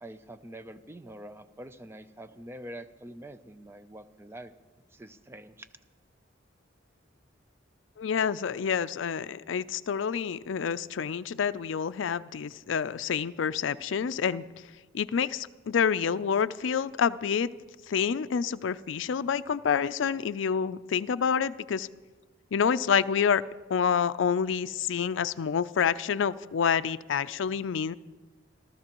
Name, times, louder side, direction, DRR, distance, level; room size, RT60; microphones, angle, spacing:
voice 1, 0.0-4.5 4.9-5.7, right 1 dB, 15° right, 11 dB, 0.5 m, -45 dB
voice 2, 8.0-14.4 14.9-17.5 17.9-21.9 22.5-23.4 23.7-27.9, left 7 dB, 75° left, 14 dB, 0.4 m, -28 dB
27.0 x 13.0 x 3.0 m, 1.2 s
head